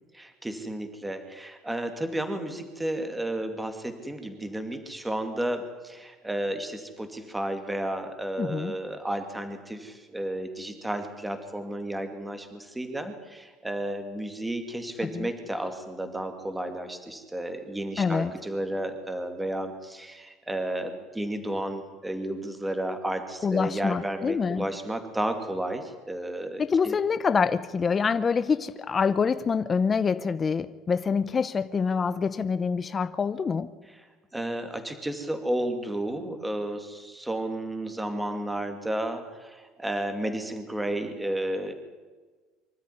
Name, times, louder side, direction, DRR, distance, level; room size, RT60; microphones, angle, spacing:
voice 1, 0.1-27.0 34.3-41.7, right 1 dB, 5° right, 2.3 m, -32 dB
voice 2, 8.4-8.8 15.0-15.3 18.0-18.3 23.4-24.7 26.6-33.7, left 5 dB, 20° left, 0.6 m, -26 dB
24.5 x 13.5 x 9.9 m
cardioid pair, 155°, 0 cm